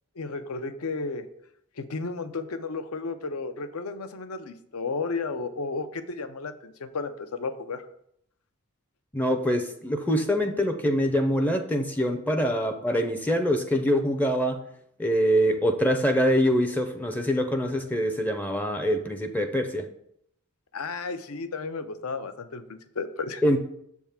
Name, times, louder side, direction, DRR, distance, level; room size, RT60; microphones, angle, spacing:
voice 1, 0.2-1.3 1.8-7.8 20.7-23.4, left 4 dB, 80° left, 10 dB, 0.6 m, -33 dB
voice 2, 9.1-14.6 15.0-19.9 23.4-23.6, equal, 10° left, 7 dB, 0.4 m, -24 dB
7.2 x 3.6 x 5.7 m, 0.73 s
head